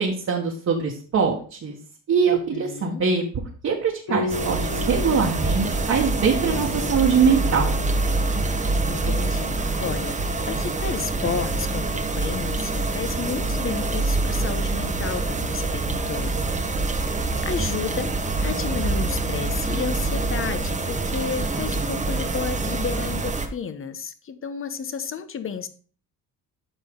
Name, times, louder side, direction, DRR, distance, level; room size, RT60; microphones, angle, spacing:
voice 1, 0.0-1.8 2.1-3.2 3.6-4.6 4.9-7.7, right 6 dB, 50° right, -2 dB, 1.6 m, -22 dB
voice 2, 2.3-3.0 8.8-10.2 10.5-16.6 17.4-18.1 18.4-25.7, left 6 dB, 40° left, 10 dB, 1.0 m, -32 dB
Piano, 4.1-13.4, left 4 dB, 70° left, 3.1 m, -38 dB
sound 1, 4.3-23.5, right 2 dB, 20° right, 1.1 m, -25 dB
8.3 x 5.5 x 3.7 m, 0.40 s
cardioid pair, 90°, 35 cm